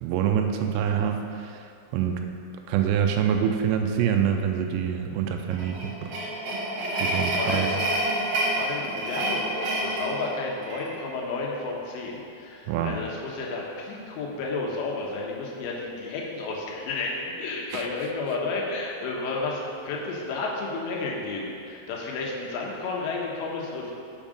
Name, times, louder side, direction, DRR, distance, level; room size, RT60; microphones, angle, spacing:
voice 1, 0.0-1.6 1.9-2.2 2.7-6.1 7.0-7.7 12.7-13.0 17.7-17.8, right 8 dB, 85° right, 5 dB, 2.7 m, -25 dB
sound 1, 5.5-11.0, right 1 dB, 55° right, 2.7 m, -28 dB
voice 2, 7.4-7.7 8.6-23.9, left 3 dB, 80° left, -2 dB, 3.3 m, -32 dB
7.5 x 7.1 x 5.1 m, 2.6 s
omnidirectional pair, 5.1 m